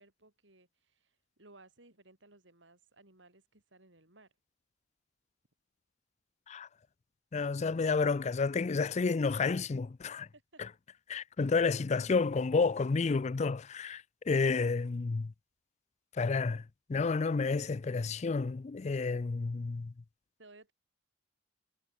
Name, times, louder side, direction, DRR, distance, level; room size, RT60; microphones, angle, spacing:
voice 1, 0.0-4.3 10.3-10.6 20.4-20.7, right 2 dB, 80° right, 5.6 m, -60 dB
voice 2, 7.3-10.3 10.6-10.7 11.1-15.3 16.1-16.6 16.9-19.9, left 4 dB, 40° left, 0.4 m, -30 dB
head